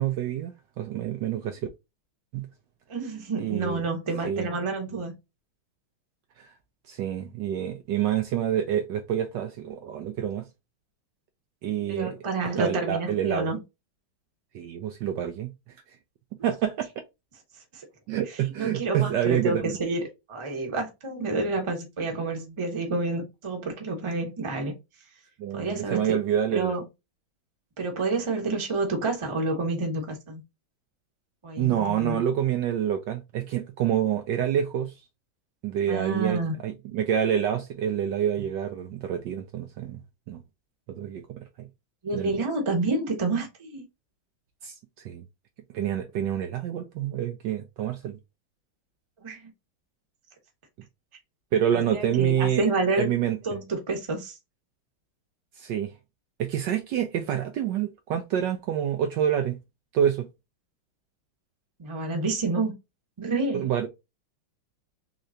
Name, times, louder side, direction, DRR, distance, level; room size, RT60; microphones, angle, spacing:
voice 1, 0.0-1.6 2.3-2.5 3.4-3.8 4.2-4.5 6.4-6.5 6.9-10.4 11.6-12.1 12.6-13.5 14.5-15.5 16.4-16.9 18.1-19.8 21.3-21.4 25.4-26.8 31.6-34.9 35.6-40.0 40.3-40.4 40.9-41.7 42.1-42.4 44.6-44.7 45.0-45.2 45.7-48.2 51.5-52.6 53.0-53.6 55.6-55.9 56.4-59.6 59.9-60.3 63.5-63.9, right 10 dB, 75° right, 1.1 m, -27 dB
voice 2, 2.9-5.1 11.9-13.6 16.4-16.5 17.7-17.8 18.3-20.0 20.3-24.7 25.5-26.2 26.5-26.8 27.8-30.4 31.4-32.2 35.9-36.6 42.0-43.8 49.2-49.5 51.7-53.1 53.4-54.4 61.8-62.7 63.2-63.6, right 3 dB, 20° right, 0.8 m, -29 dB
3.7 x 3.2 x 2.7 m
omnidirectional pair, 2.2 m